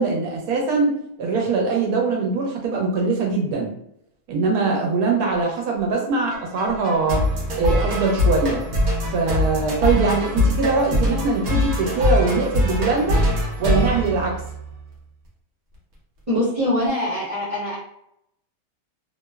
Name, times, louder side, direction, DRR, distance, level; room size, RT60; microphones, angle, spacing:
voice 1, 0.0-3.7 4.3-7.2 7.6-8.6 9.1-13.2 13.6-14.4, right 3 dB, 85° right, 0 dB, 1.2 m, -22 dB
sound 1, 6.3-14.9, left 1 dB, 55° right, 1.0 m, -23 dB
voice 2, 16.3-17.7, left 1 dB, 30° right, -10 dB, 0.7 m, -23 dB
2.9 x 2.0 x 2.2 m, 0.75 s
omnidirectional pair, 1.6 m